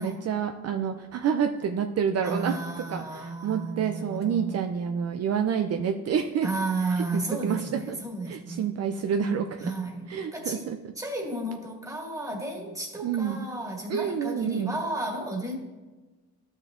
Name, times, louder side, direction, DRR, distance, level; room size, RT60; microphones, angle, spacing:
voice 1, 0.0-2.6 2.9-6.5 7.0-8.0 8.3-9.7 10.1-10.9 13.0-13.4 13.9-14.8, right 7 dB, 55° right, 5 dB, 0.5 m, -28 dB
voice 2, 2.2-4.6 6.4-7.7 8.0-8.7 9.6-15.5, right 2 dB, 10° right, -1 dB, 1.9 m, -33 dB
12.5 x 6.2 x 2.5 m, 1.2 s
cardioid pair, 90°, 30 cm